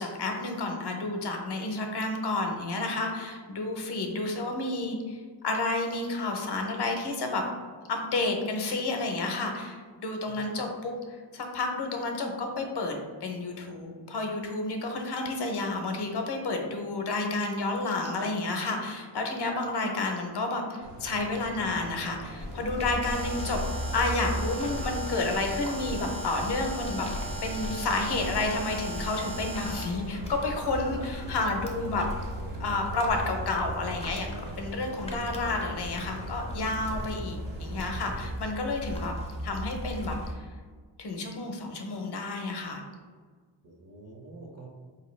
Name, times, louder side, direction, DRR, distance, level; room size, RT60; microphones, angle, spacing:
voice 1, 0.0-7.4 7.9-27.1 27.4-32.1 32.6-39.1 39.4-40.3 41.0-42.8, left 2 dB, 65° left, 3 dB, 0.7 m, -31 dB
sound 1, 20.8-38.4, right 1 dB, 70° right, 0.7 m, -42 dB
sound 2, 22.4-40.3, left 1 dB, 15° left, 0.4 m, -37 dB
Alarm, 23.0-30.0, right 3 dB, 85° right, 1.4 m, -39 dB
voice 2, 43.6-44.7, right 3 dB, 35° right, 0 dB, 0.6 m, -47 dB
4.5 x 2.8 x 3.1 m, 1.5 s
wide cardioid pair, 155°, 44 cm